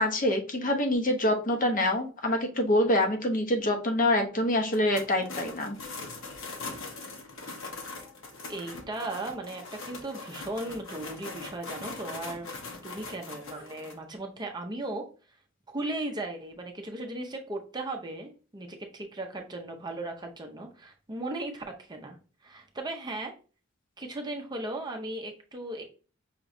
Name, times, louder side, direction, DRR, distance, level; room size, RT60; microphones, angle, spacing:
voice 1, 0.0-5.8, left 1 dB, 40° left, 5 dB, 0.8 m, -26 dB
sound 1, 4.7-13.9, left 3 dB, 65° left, 1.0 m, -41 dB
voice 2, 8.5-12.5 12.8-15.0 15.7-22.2 22.4-23.3 24.0-25.8, right 2 dB, 20° right, 2 dB, 0.6 m, -37 dB
5.7 x 3.0 x 2.6 m, 0.36 s
head